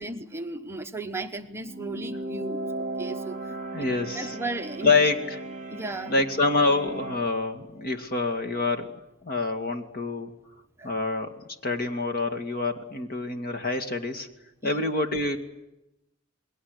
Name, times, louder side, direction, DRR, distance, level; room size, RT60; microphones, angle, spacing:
voice 1, 0.0-3.6 4.1-4.9 5.7-6.1 10.8-10.9 14.6-14.8, right 2 dB, 10° right, 5 dB, 1.0 m, -35 dB
sound 1, 1.6-7.3, right 2 dB, 35° right, 1.6 m, -36 dB
voice 2, 3.7-4.4 4.8-5.4 6.1-10.3 10.8-11.3 11.6-14.3 14.6-15.4, left 3 dB, 45° left, 6 dB, 2.3 m, -26 dB
28.5 x 21.5 x 8.2 m, 0.90 s
head